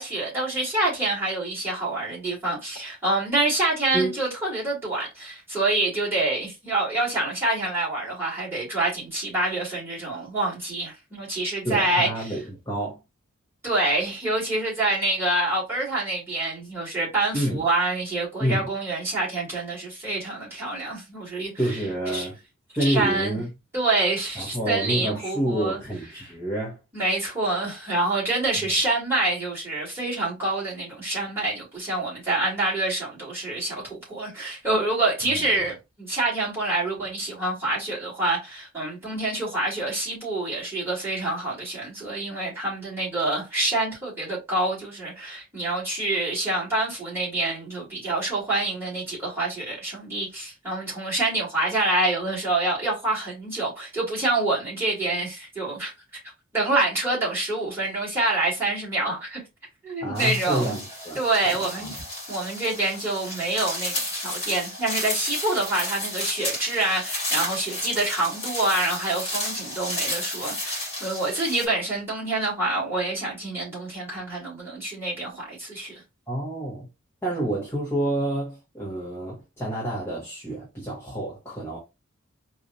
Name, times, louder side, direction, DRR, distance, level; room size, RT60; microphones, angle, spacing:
voice 1, 0.0-12.3 13.6-21.8 22.1-22.3 22.8-23.4 23.7-25.8 26.9-55.9 56.5-59.4 59.8-60.8 61.1-62.0 62.3-76.0, right 2 dB, 10° right, 2.4 m, -26 dB
voice 2, 11.6-13.0 17.3-17.6 18.4-18.7 21.6-22.4 22.8-23.5 24.3-26.8 35.3-35.5 60.0-61.9 76.3-76.9 77.2-81.8, right 1 dB, 10° left, 1.1 m, -28 dB
sound 1, 60.1-71.7, left 1 dB, 30° left, 1.4 m, -32 dB
4.6 x 2.5 x 2.7 m
head